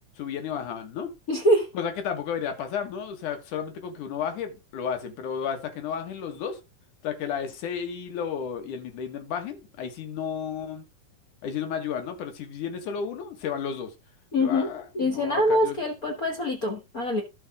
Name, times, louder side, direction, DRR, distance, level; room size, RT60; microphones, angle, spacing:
voice 1, 0.2-1.1 1.7-6.6 7.0-10.8 11.4-13.9 14.4-15.8, left 7 dB, 90° left, 3.1 m, -32 dB
voice 2, 1.3-1.7 14.3-14.7 14.9-17.2, left 1 dB, 45° left, 1.2 m, -24 dB
15.5 x 5.3 x 3.6 m
omnidirectional pair, 3.4 m